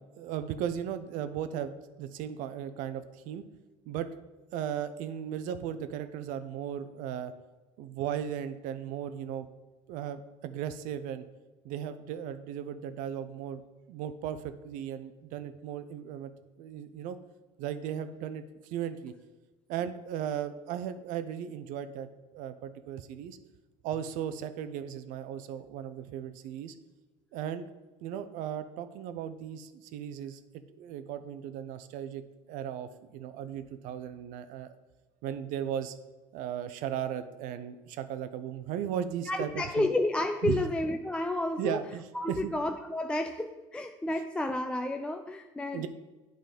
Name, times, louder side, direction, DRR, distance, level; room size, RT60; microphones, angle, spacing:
voice 1, 0.2-3.4 3.9-4.1 4.5-7.3 7.8-9.5 9.9-11.2 11.6-13.6 13.9-16.3 16.6-17.2 17.6-19.1 19.7-22.1 22.3-23.4 23.8-26.7 27.3-27.7 28.0-32.2 32.5-34.7 35.2-35.9 36.3-39.9 40.4-40.6 41.6-42.5 45.7-45.9, right 9 dB, 70° right, 11 dB, 0.6 m, -36 dB
voice 2, 39.3-41.8 42.1-45.9, left 1 dB, 5° left, 6 dB, 0.3 m, -31 dB
8.9 x 3.9 x 5.1 m, 1.2 s
cardioid pair, 130°, 14 cm